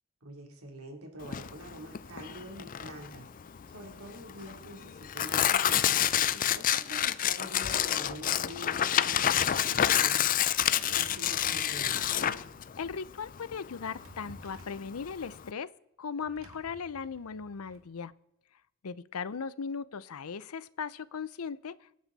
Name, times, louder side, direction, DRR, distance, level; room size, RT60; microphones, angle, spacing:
voice 1, 0.2-10.3 10.6-12.5, right 1 dB, 85° right, 1 dB, 3.4 m, -46 dB
Tearing, 1.2-15.5, left 10 dB, 40° left, 0.4 m, -29 dB
Drawer open or close, 8.2-9.4 10.6-12.2 13.5-14.9 16.2-17.8, right 1 dB, 70° right, 2.1 m, -54 dB
voice 2, 12.8-15.7 16.0-18.1 18.8-22.0, left 6 dB, 90° left, 17 dB, 0.6 m, -38 dB
24.5 x 9.5 x 4.1 m, 0.81 s
head